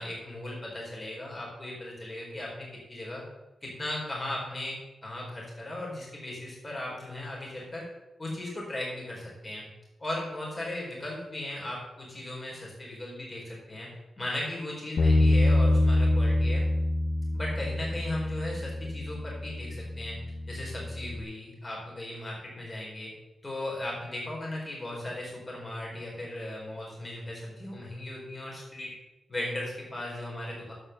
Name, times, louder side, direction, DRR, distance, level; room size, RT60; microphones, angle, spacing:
voice 1, 0.0-3.2 3.6-7.8 8.2-9.6 10.0-13.9 14.2-16.6 17.3-20.2 20.5-23.1 23.4-28.9 29.3-30.7, left 1 dB, 30° left, -3 dB, 4.3 m, -37 dB
Bass guitar, 15.0-21.2, left 2 dB, 85° left, 1.0 m, -26 dB
9.7 x 7.9 x 6.8 m, 1.0 s
wide cardioid pair, 130°, 0 cm